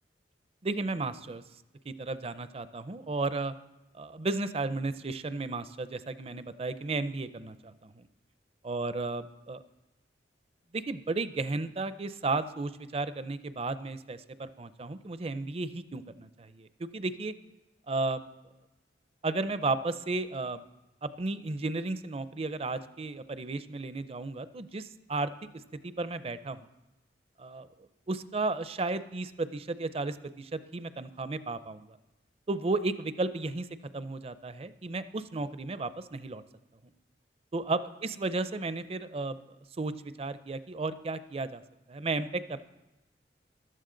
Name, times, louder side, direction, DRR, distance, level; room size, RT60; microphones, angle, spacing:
voice 1, 0.6-1.4 1.8-3.5 3.9-8.1 8.6-9.6 10.7-17.3 17.9-18.3 19.2-20.6 21.0-25.3 25.8-26.6 27.4-32.0 32.5-33.7 33.9-36.4 37.5-39.4 39.8-41.6 41.9-42.6, right 3 dB, 35° right, 13 dB, 0.5 m, -34 dB
14.0 x 12.5 x 3.9 m, 1.0 s
head